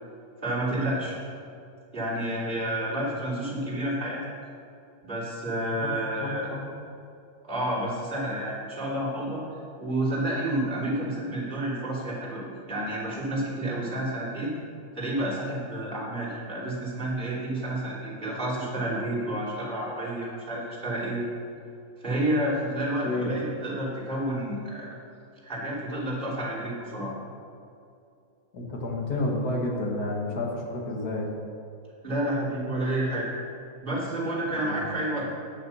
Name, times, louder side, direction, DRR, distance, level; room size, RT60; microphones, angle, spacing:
voice 1, 0.4-1.2 1.9-4.2 5.0-6.5 7.4-9.4 9.8-14.5 15.0-21.2 22.0-24.9 25.4-27.1 32.0-33.3 33.8-35.3, right 1 dB, 30° right, -7 dB, 3.4 m, -30 dB
voice 2, 6.2-6.6 23.0-23.3 28.5-31.3 34.6-34.8, left 2 dB, 85° left, -1 dB, 2.0 m, -30 dB
10.0 x 6.9 x 6.9 m, 2.5 s
omnidirectional pair, 1.6 m